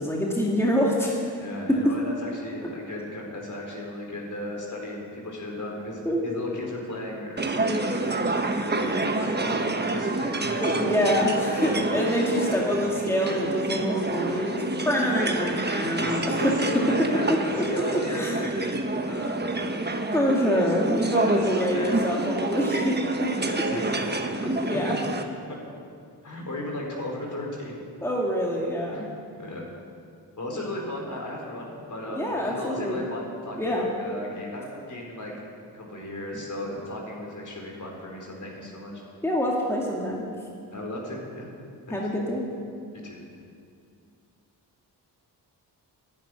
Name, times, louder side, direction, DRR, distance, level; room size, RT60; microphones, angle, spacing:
voice 1, 0.0-1.3 1.7-1.9 6.1-6.2 10.6-16.6 17.3-18.4 20.1-23.3 24.6-24.9 28.0-29.1 32.1-33.0 33.6-33.9 36.3-36.4 39.2-40.3 41.9-42.5, equal, 5° left, -3 dB, 2.4 m, -26 dB
voice 2, 1.4-10.9 11.4-11.8 12.4-12.8 15.1-15.3 16.0-19.7 21.1-22.0 23.5-25.0 26.2-27.8 28.9-29.6 30.4-35.3 35.7-39.0 40.7-41.5 41.9-42.0 43.0-43.2, left 1 dB, 45° left, -1 dB, 4.4 m, -35 dB
sound 1, 7.4-25.2, right 2 dB, 25° right, 1.2 m, -28 dB
11.0 x 10.5 x 9.8 m, 2.3 s
cardioid pair, 60°, 41 cm